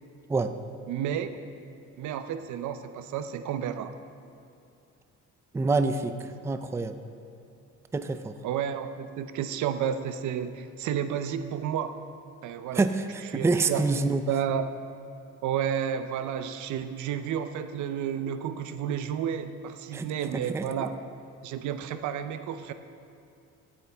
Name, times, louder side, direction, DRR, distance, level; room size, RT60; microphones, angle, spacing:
voice 1, 0.9-1.4 2.0-3.9 8.4-12.0 12.4-12.8 13.3-13.8 14.3-14.7 15.4-21.0 21.4-22.7, right 9 dB, 75° right, 10 dB, 0.7 m, -31 dB
voice 2, 5.5-6.9 7.9-8.4 12.7-14.2 19.9-20.1 20.3-20.9, right 3 dB, 10° right, 9 dB, 0.4 m, -27 dB
16.0 x 8.6 x 3.5 m, 2.6 s
cardioid pair, 115°, 30 cm